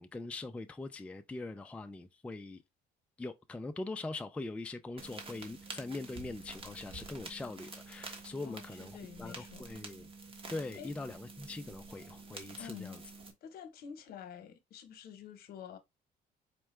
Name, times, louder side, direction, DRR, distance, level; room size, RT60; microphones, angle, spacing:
voice 1, 0.0-2.6 3.2-10.1 10.5-13.0, left 2 dB, 5° left, 0.3 m, -42 dB
sound 1, 5.0-13.3, right 3 dB, 35° right, 1.1 m, -48 dB
voice 2, 8.4-9.7 10.8-10.9 12.6-13.0 13.4-15.8, left 8 dB, 65° left, 0.9 m, -48 dB
4.4 x 2.3 x 3.1 m
cardioid pair, 110°, 17 cm